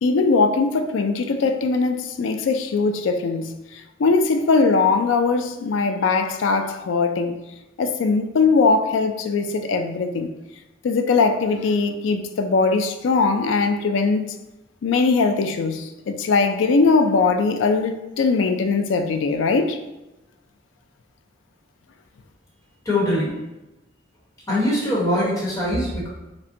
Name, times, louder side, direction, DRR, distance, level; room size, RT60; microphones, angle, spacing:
voice 1, 0.0-7.4 7.8-10.3 10.8-14.3 14.8-19.8, left 4 dB, 90° left, 0.4 m, -20 dB
voice 2, 22.8-23.3 24.5-26.1, left 1 dB, 20° left, 1.1 m, -22 dB
5.1 x 2.1 x 2.6 m
head